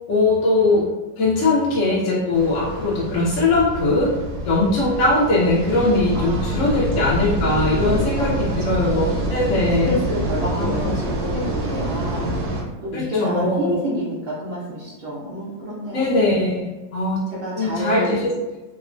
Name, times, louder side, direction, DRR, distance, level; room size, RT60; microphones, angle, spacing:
voice 1, 0.1-0.9 1.2-4.1 4.5-10.0 10.5-10.9 12.9-13.8 15.9-16.7 16.9-17.2 17.6-18.3, left 2 dB, 70° left, -5 dB, 0.7 m, -20 dB
sound 1, 2.3-12.6, right 1 dB, 90° right, 1.2 m, -26 dB
voice 2, 6.1-7.1 7.8-9.1 9.9-12.3 12.8-16.3 17.4-18.2, equal, 60° right, -7 dB, 0.6 m, -29 dB
2.9 x 2.1 x 2.4 m, 1.1 s
omnidirectional pair, 1.7 m